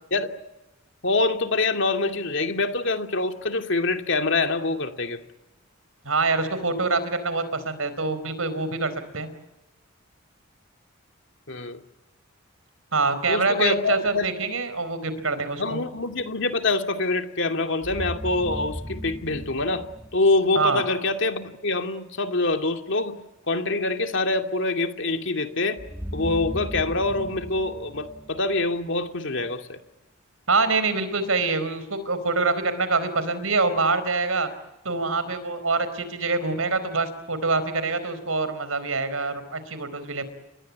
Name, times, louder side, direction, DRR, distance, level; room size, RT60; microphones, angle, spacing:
voice 1, 1.0-5.2 11.5-11.8 13.3-14.3 15.6-19.8 20.1-23.2 23.5-25.8 26.1-29.8, left 3 dB, 60° left, 6 dB, 2.4 m, -25 dB
voice 2, 6.0-9.3 12.9-15.8 20.5-20.8 30.5-34.5 34.8-40.3, right 3 dB, 85° right, 13 dB, 4.5 m, -25 dB
sound 1, 17.8-20.8 25.8-29.0, equal, 10° right, 1.2 m, -36 dB
30.0 x 22.5 x 8.5 m, 1.0 s
head